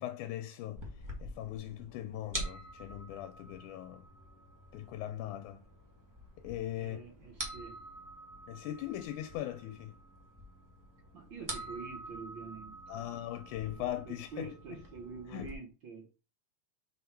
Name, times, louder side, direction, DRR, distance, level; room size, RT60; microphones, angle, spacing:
voice 1, 0.0-4.1 4.7-5.6 6.4-7.0 8.5-10.0 12.9-14.8 15.3-15.5, left 12 dB, 90° left, 2.1 m, -40 dB
sound 1, 0.8-15.5, right 1 dB, 10° right, 0.8 m, -46 dB
voice 2, 6.8-7.8 11.1-13.2 13.8-16.1, right 5 dB, 60° right, 1.3 m, -47 dB
5.5 x 3.7 x 4.6 m
omnidirectional pair, 3.5 m